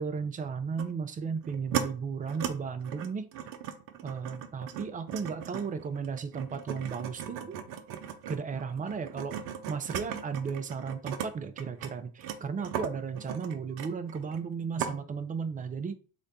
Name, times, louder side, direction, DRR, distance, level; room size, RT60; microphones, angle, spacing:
voice 1, 0.0-3.3 4.0-7.6 8.3-9.4 9.7-16.0, right 5 dB, 20° right, 10 dB, 0.3 m, -35 dB
sound 1, 0.8-0.9 1.4-1.9 2.3-2.5 2.8-11.3 11.6-14.5 14.8-14.9, right 9 dB, 80° right, 0.7 m, -37 dB
3.9 x 2.1 x 3.9 m, 0.39 s
hypercardioid pair, 65°, 49 cm